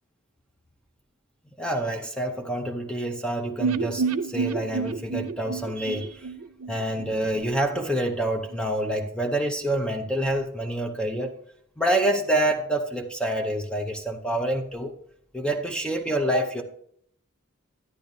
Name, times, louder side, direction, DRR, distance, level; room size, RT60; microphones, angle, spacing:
voice 1, 1.6-6.3 6.7-11.4 11.8-14.9 15.3-16.6, right 1 dB, 5° left, 0.6 m, -27 dB
sound 1, 3.6-7.5 7.7-7.8 8.1-8.2, right 5 dB, 85° right, 0.5 m, -29 dB
12.0 x 9.6 x 2.7 m
head